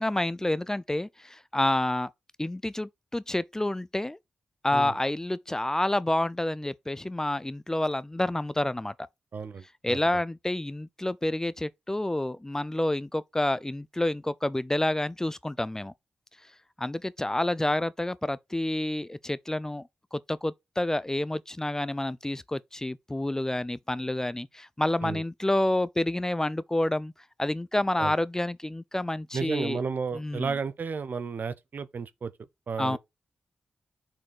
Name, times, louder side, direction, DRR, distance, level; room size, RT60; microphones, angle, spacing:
voice 1, 0.0-2.1 2.4-4.2 4.6-8.9 9.8-15.9 16.8-27.1 27.4-29.8 30.1-30.5 32.8-33.0, left 1 dB, 15° left, 0.5 m, -29 dB
voice 2, 9.3-10.2 25.0-25.2 28.0-28.1 29.3-32.3 32.7-33.0, right 5 dB, 60° right, 0.7 m, -33 dB
6.0 x 4.2 x 4.7 m
supercardioid pair, 45°, 3 cm